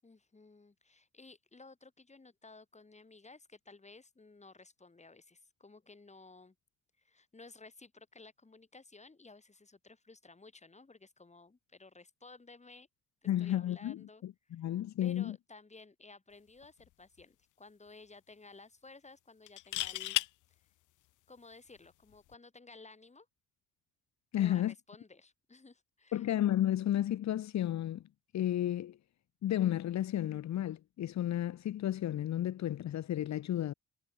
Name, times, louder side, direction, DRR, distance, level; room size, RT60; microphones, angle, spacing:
voice 1, 0.0-6.6 7.0-12.9 13.2-14.7 15.0-20.7 21.3-23.3 24.4-26.3, left 3 dB, 20° left, 7.7 m, -56 dB
voice 2, 13.3-15.4 24.3-24.7 26.1-28.0 28.3-29.0 29.4-33.7, left 12 dB, 65° left, 1.3 m, -32 dB
sound 1, 16.6-16.9 17.2-17.3 19.5-20.3 22.1-22.3, left 16 dB, 85° left, 1.0 m, -34 dB
cardioid pair, 90°, 30 cm